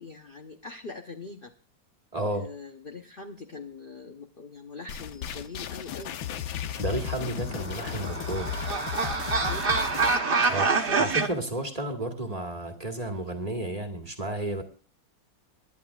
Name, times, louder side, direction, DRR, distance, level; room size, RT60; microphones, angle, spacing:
voice 1, 0.0-1.5 2.3-6.2 9.4-10.0, left 4 dB, 45° left, 4 dB, 0.7 m, -42 dB
voice 2, 2.1-2.5 6.8-8.6 10.5-14.6, right 1 dB, 20° right, 3 dB, 1.6 m, -32 dB
sound 1, 4.9-10.2, left 10 dB, 90° left, 1.6 m, -35 dB
sound 2, 7.4-11.3, right 4 dB, 35° right, 1.0 m, -26 dB
25.0 x 11.0 x 2.4 m, 0.38 s
omnidirectional pair, 2.1 m